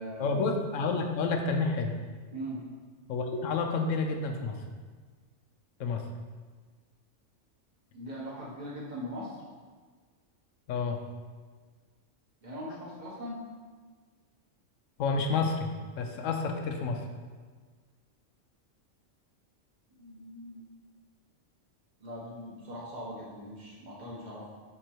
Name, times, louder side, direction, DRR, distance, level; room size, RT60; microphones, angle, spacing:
voice 1, 0.2-2.0 3.1-4.6 5.8-6.0 10.7-11.0 15.0-17.0, left 4 dB, 80° left, 4 dB, 1.0 m, -29 dB
voice 2, 2.3-2.6 7.9-9.4 12.4-13.4 20.0-20.7 22.0-24.5, equal, 35° right, -6 dB, 1.6 m, -40 dB
6.5 x 3.7 x 4.4 m, 1.5 s
omnidirectional pair, 1.3 m